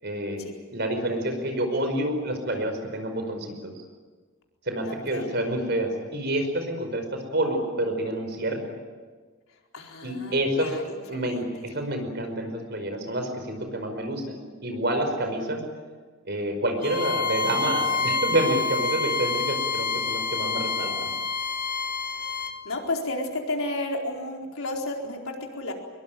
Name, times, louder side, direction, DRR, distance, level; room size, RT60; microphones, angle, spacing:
voice 1, 0.0-3.7 4.6-8.6 10.0-10.7 11.1-15.6 16.2-21.1, right 1 dB, 50° right, 5 dB, 5.2 m, -28 dB
voice 2, 4.8-5.3 9.7-11.5 22.6-25.7, left 2 dB, 90° left, 1 dB, 4.4 m, -32 dB
Bowed string instrument, 16.8-22.6, left 4 dB, 45° left, 1.7 m, -27 dB
23.5 x 22.5 x 9.2 m, 1.5 s
head